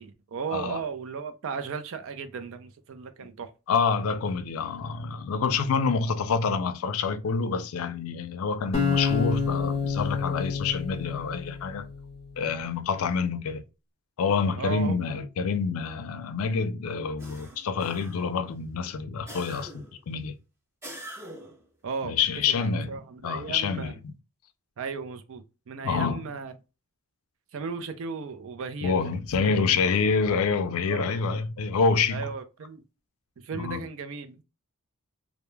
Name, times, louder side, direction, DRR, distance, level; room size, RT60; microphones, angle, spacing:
voice 1, 0.0-3.5 14.6-15.1 21.8-24.0 24.8-26.5 27.5-29.0 29.4-29.5 30.9-31.1 32.1-32.8 33.4-34.4, right 5 dB, 60° right, 0.4 m, -36 dB
voice 2, 3.7-11.9 12.4-13.6 14.2-20.3 22.0-24.1 25.8-26.3 28.8-32.3 33.5-33.9, left 5 dB, 70° left, 0.4 m, -27 dB
sound 1, 8.7-11.9, left 5 dB, 25° left, 0.6 m, -28 dB
sound 2, 17.2-18.4 19.3-20.0 20.8-21.6, right 1 dB, 10° right, 0.5 m, -43 dB
2.2 x 2.0 x 3.0 m
head